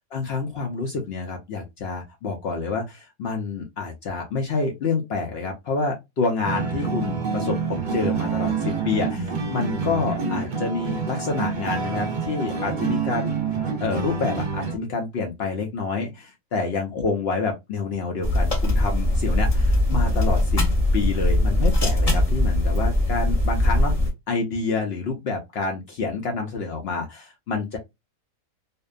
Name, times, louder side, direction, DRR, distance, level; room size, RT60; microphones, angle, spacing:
voice 1, 0.1-13.4 13.8-20.6 20.9-23.9 24.3-27.8, left 4 dB, 65° left, 2 dB, 0.6 m, -28 dB
sound 1, 6.4-14.8, right 5 dB, 60° right, 0.5 m, -27 dB
sound 2, 18.2-24.1, left 1 dB, 30° left, 0.8 m, -21 dB
2.6 x 2.1 x 2.3 m, 0.20 s
omnidirectional pair, 1.5 m